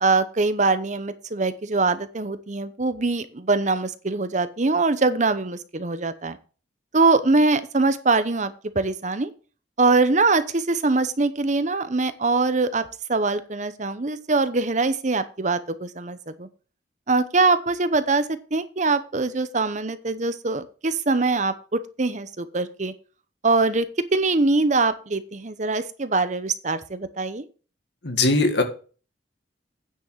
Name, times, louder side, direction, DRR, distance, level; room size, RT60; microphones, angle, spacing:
voice 1, 0.0-6.4 6.9-9.3 9.8-16.5 17.1-22.9 23.4-27.5, right 3 dB, 40° right, 12 dB, 0.8 m, -23 dB
voice 2, 28.0-28.6, left 2 dB, 65° left, 6 dB, 1.9 m, -20 dB
9.5 x 6.2 x 6.4 m, 0.37 s
head